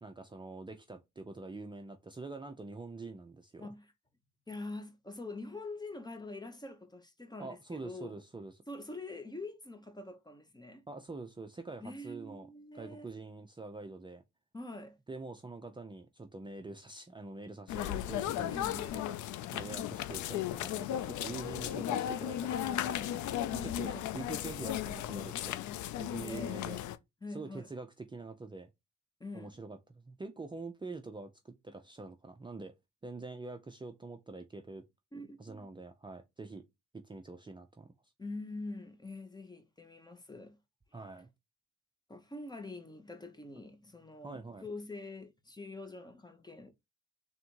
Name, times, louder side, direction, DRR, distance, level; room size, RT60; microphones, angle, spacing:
voice 1, 0.0-3.7 7.4-8.6 10.9-12.5 12.7-14.2 15.1-19.2 19.5-23.3 23.6-25.6 26.0-26.8 27.3-28.7 29.3-32.7 33.0-34.8 35.4-36.6 37.0-37.9 40.9-41.3 44.2-44.7, right 3 dB, 15° right, 0.5 m, -45 dB
voice 2, 3.6-3.9 4.5-8.2 8.7-10.8 11.8-13.1 14.5-15.0 18.5-19.0 23.5-24.1 26.2-26.8 27.2-27.7 29.2-29.6 35.1-35.7 38.2-40.6 42.1-46.7, left 2 dB, 15° left, 0.7 m, -45 dB
sound 1, 17.7-27.0, left 12 dB, 75° left, 0.5 m, -36 dB
3.6 x 2.6 x 4.4 m
cardioid pair, 90°, 30 cm